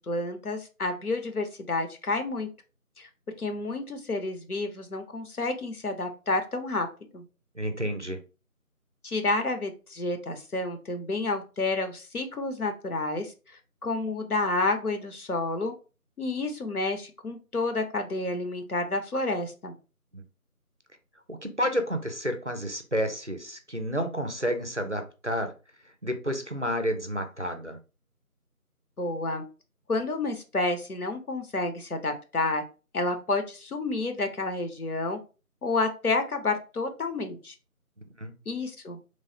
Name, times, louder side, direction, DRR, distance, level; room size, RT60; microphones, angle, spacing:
voice 1, 0.1-2.5 3.0-3.1 3.4-6.9 7.1-7.2 9.0-13.3 13.8-15.7 16.2-19.8 29.0-29.4 29.9-32.6 32.9-35.2 35.6-37.5 38.5-39.0, left 3 dB, 75° left, 6 dB, 0.8 m, -30 dB
voice 2, 7.6-8.2 20.1-20.2 21.3-25.5 26.0-27.8 38.2-38.4, equal, 55° right, 7 dB, 0.4 m, -30 dB
3.1 x 2.1 x 2.7 m, 0.32 s
figure-of-eight pair, 180°, 45 cm